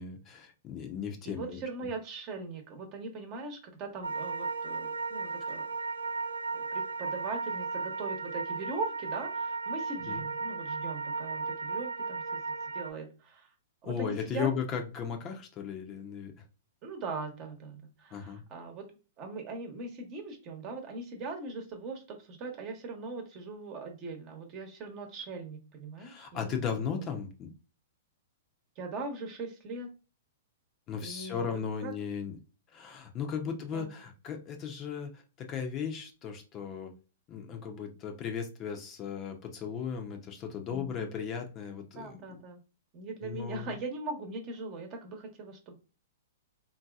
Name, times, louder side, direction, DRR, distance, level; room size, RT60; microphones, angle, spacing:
voice 1, 0.0-1.6 10.1-10.2 13.8-16.3 18.1-18.4 26.0-27.5 30.9-32.3 32.7-36.9 37.3-42.2 43.2-43.7, left 7 dB, 30° left, 5 dB, 0.6 m, -36 dB
voice 2, 1.2-5.7 6.5-13.5 13.8-14.5 16.8-18.9 19.2-26.8 28.8-29.9 31.0-31.9 33.4-33.9 40.7-41.1 41.9-42.6 42.9-45.8, right 3 dB, 40° right, 4 dB, 1.0 m, -40 dB
sound 1, 4.0-12.9, right 4 dB, 90° right, 0.5 m, -35 dB
3.8 x 2.7 x 2.3 m, 0.32 s
hypercardioid pair, 115°, 0 cm